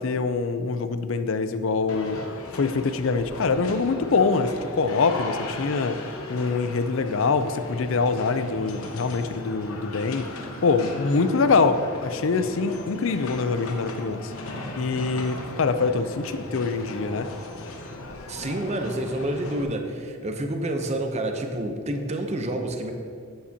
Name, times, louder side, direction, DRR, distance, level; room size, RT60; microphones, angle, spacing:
voice 1, 0.0-2.2 2.5-6.0 6.3-10.3 10.6-14.3 14.8-17.3, left 4 dB, 65° left, 11 dB, 0.5 m, -24 dB
sound 1, 1.9-19.6, left 2 dB, 80° left, 1.0 m, -37 dB
voice 2, 18.3-22.9, right 1 dB, 30° right, 4 dB, 0.7 m, -28 dB
11.5 x 8.6 x 2.8 m, 2.3 s
head